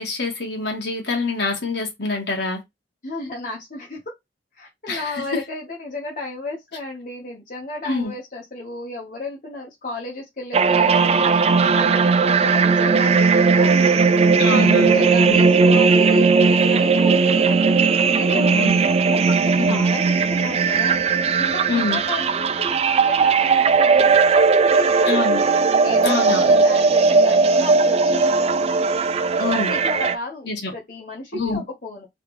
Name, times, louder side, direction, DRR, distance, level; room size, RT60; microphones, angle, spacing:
voice 1, 0.0-2.6 4.9-5.2 7.8-8.1 14.4-15.4 18.3-18.8 19.6-19.8 21.7-22.0 25.1-25.4 26.0-26.5 29.4-29.7 30.4-30.7 31.3-31.6, left 3 dB, 70° left, 1.5 m, -26 dB
voice 2, 3.0-4.0 4.6-14.0 14.5-17.7 18.0-25.2 25.8-28.6 29.5-32.1, left 2 dB, 50° left, 1.1 m, -33 dB
sound 1, 10.5-30.2, right 4 dB, 35° right, 0.4 m, -17 dB
3.4 x 3.3 x 3.1 m
head